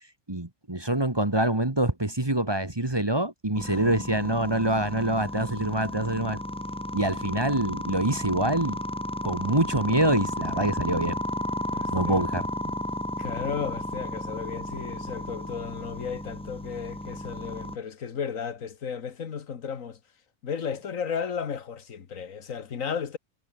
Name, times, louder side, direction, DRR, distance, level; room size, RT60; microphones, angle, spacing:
voice 1, 0.3-6.4 6.9-8.8 9.2-11.2 11.9-12.5, right 1 dB, 20° right, 1.7 m, -25 dB
sound 1, 3.5-17.8, left 1 dB, 5° left, 0.5 m, -33 dB
voice 2, 3.6-4.0 11.7-12.2 13.2-20.0 20.4-23.2, left 7 dB, 80° left, 1.8 m, -34 dB
omnidirectional pair, 1.4 m